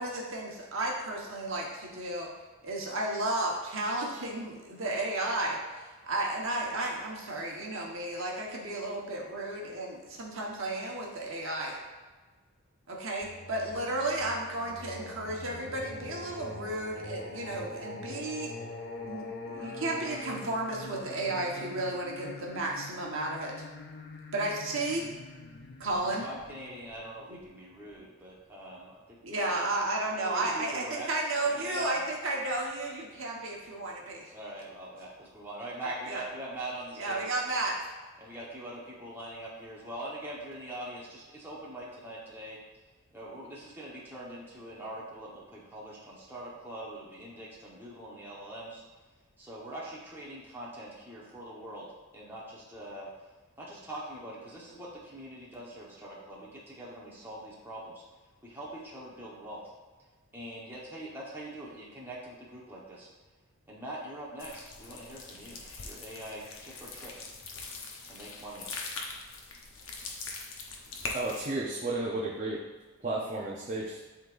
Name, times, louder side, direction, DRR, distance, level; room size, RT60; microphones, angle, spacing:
voice 1, 0.0-2.3 2.6-11.8 12.9-18.5 19.0-23.5 24.3-25.1 25.8-26.3 29.2-34.3 35.8-36.3 37.0-37.9, right 2 dB, 60° right, -2 dB, 1.3 m, -33 dB
Singing, 13.2-27.9, left 3 dB, 45° left, 0.5 m, -44 dB
voice 2, 26.2-29.6 30.1-31.1 31.5-32.0 34.3-37.3 38.2-42.6 43.1-48.8 49.4-53.1 53.6-58.0 58.4-59.6 60.3-63.1 63.7-67.3 68.0-68.7, right 1 dB, 10° right, -6 dB, 1.2 m, -43 dB
sound 1, 64.4-71.5, left 3 dB, 60° left, 0.9 m, -42 dB
voice 3, 71.1-72.6 73.0-74.0, right 2 dB, 30° right, -5 dB, 0.8 m, -33 dB
11.0 x 3.8 x 2.6 m, 1.3 s
head